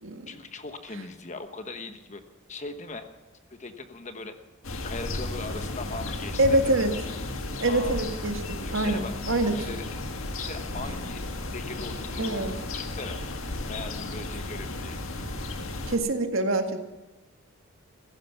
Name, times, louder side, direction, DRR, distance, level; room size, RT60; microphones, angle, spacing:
voice 1, 0.3-2.2 2.5-3.1 3.5-4.4 4.8-6.9 7.7-8.0 8.6-9.1 9.5-9.8 10.4-11.3 11.5-13.2 13.7-15.0, left 3 dB, 35° left, 8 dB, 1.2 m, -39 dB
sound 1, 4.6-16.0, left 2 dB, 75° left, 1.8 m, -34 dB
voice 2, 6.4-6.9 7.6-8.4 8.7-9.5 12.2-12.5 15.9-16.8, right 2 dB, 70° right, 6 dB, 1.8 m, -25 dB
15.5 x 15.5 x 5.9 m, 1.1 s
head